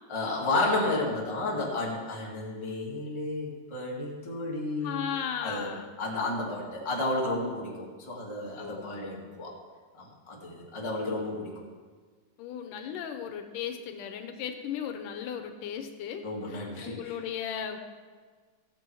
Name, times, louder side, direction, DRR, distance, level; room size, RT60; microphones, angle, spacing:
voice 1, 0.1-5.1 5.4-5.7 6.0-9.5 9.9-11.6 16.2-17.1, left 2 dB, 10° left, -4 dB, 1.4 m, -32 dB
voice 2, 4.8-5.9 8.6-9.0 12.4-17.8, left 8 dB, 80° left, 6 dB, 2.3 m, -36 dB
15.5 x 7.5 x 4.7 m, 1.5 s
omnidirectional pair, 3.8 m